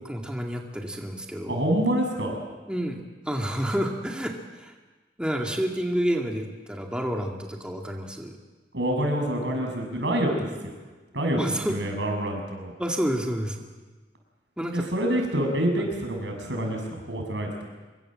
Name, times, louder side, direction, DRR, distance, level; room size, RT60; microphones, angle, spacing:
voice 1, 0.0-1.6 2.7-4.7 5.2-8.3 11.4-11.8 12.8-13.7 14.6-14.8 15.8-15.9, equal, 5° right, 1 dB, 2.1 m, -29 dB
voice 2, 1.5-2.4 8.7-10.7 11.1-11.4 11.7-12.7 14.7-17.7, right 1 dB, 90° right, 2 dB, 7.0 m, -27 dB
25.5 x 23.5 x 7.6 m, 1.3 s
head